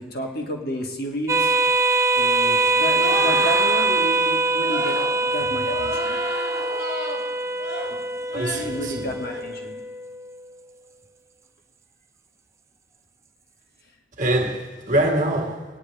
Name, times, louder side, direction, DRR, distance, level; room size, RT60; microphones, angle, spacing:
voice 1, 0.0-1.6 2.1-6.2 7.9-9.8, equal, 50° left, 1.6 m, -32 dB
sound 1, 1.3-10.2, right 3 dB, 15° right, 0.3 m, -23 dB
sound 2, 3.0-3.9 4.6-5.2 5.6-7.2 7.6-7.9 8.3-8.7 9.1-9.4, left 1 dB, 75° left, 3.6 m, -31 dB
voice 2, 8.3-9.1 14.2-15.6, right 1 dB, 40° right, 1.5 m, -24 dB
20.5 x 9.7 x 3.4 m
head